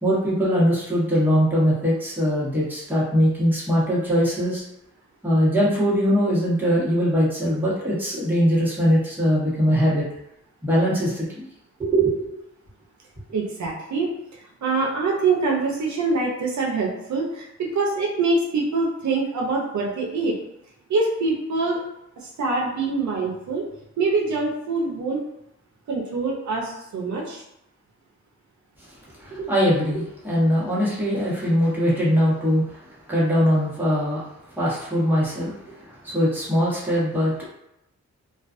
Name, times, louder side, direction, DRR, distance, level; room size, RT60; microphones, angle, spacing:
voice 1, 0.0-4.6 5.2-10.0 10.6-11.5 11.8-12.3 29.2-34.3 34.6-37.5, equal, 5° right, -8 dB, 1.0 m, -21 dB
voice 2, 13.3-20.4 20.9-21.8 22.2-23.7 24.0-25.2 25.9-27.4, right 3 dB, 70° right, -2 dB, 0.6 m, -24 dB
2.3 x 2.3 x 2.4 m, 0.82 s
cardioid pair, 85°, 30 cm